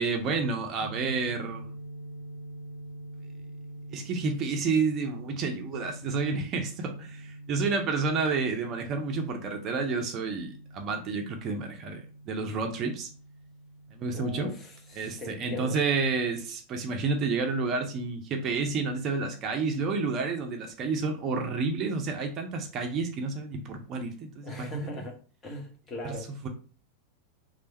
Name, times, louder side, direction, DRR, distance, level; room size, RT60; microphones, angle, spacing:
voice 1, 0.0-1.7 3.9-13.1 13.9-14.5 14.9-24.9 26.0-26.2 26.4-26.5, right 4 dB, 35° right, 0.6 m, -30 dB
sound 1, 0.8-16.4, right 1 dB, 70° left, 1.3 m, -45 dB
voice 2, 14.1-15.8 24.4-26.3, left 2 dB, 20° left, 1.1 m, -39 dB
3.3 x 2.5 x 4.1 m
figure-of-eight pair, 90°, 0 cm